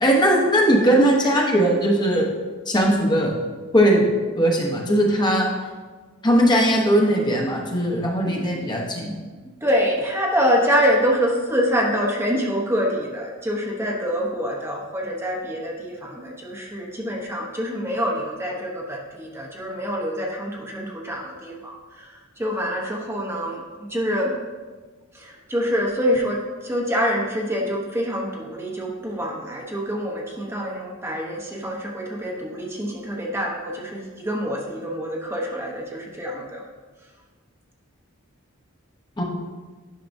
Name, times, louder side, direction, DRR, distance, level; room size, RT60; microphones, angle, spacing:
voice 1, 0.0-2.3 2.7-3.3 3.7-4.1 4.4-5.5 6.2-9.1 39.2-39.3, equal, 20° left, -1 dB, 0.9 m, -19 dB
voice 2, 9.6-21.7 22.0-22.1 22.4-23.6 23.9-24.4 25.1-36.6, equal, 15° right, -1 dB, 0.9 m, -25 dB
10.0 x 5.8 x 2.6 m, 1.4 s
head